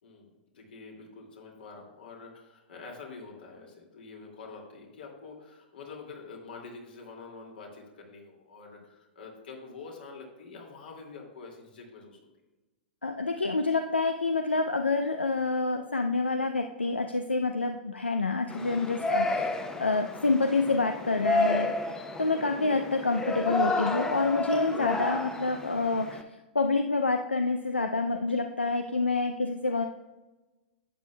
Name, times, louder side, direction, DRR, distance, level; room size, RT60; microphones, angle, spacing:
voice 1, 0.0-12.2, left 4 dB, 65° left, 0 dB, 2.3 m, -46 dB
voice 2, 13.0-26.2 26.5-29.9, left 3 dB, 90° left, 7 dB, 0.5 m, -28 dB
Yell, 18.5-26.2, left 2 dB, 10° left, 0.7 m, -31 dB
11.5 x 8.2 x 2.3 m, 1.1 s
figure-of-eight pair, 105°, 6 cm